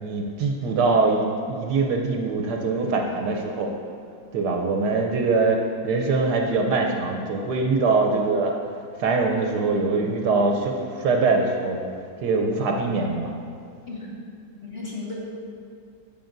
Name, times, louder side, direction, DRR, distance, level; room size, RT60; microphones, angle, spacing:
voice 1, 0.0-3.7 4.3-8.5 9.0-11.8 12.2-13.3, right 3 dB, 70° right, 2 dB, 1.2 m, -23 dB
voice 2, 13.9-14.2 14.6-15.1, left 3 dB, 35° left, -7 dB, 1.9 m, -35 dB
15.5 x 5.6 x 2.6 m, 2.4 s
omnidirectional pair, 1.9 m